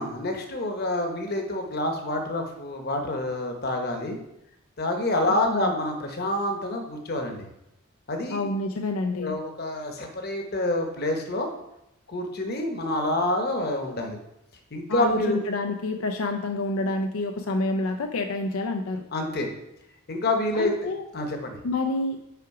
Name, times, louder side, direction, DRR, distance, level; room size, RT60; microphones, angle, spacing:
voice 1, 0.0-4.2 4.8-7.5 8.1-8.4 9.2-11.5 12.1-14.2 14.7-15.4 19.1-19.5 20.1-20.7 21.1-21.6, left 1 dB, 50° left, 4 dB, 1.0 m, -27 dB
voice 2, 8.3-9.3 14.9-19.0 20.5-21.0 21.6-22.2, left 2 dB, 80° left, 5 dB, 0.5 m, -28 dB
5.8 x 4.9 x 4.8 m, 0.86 s
head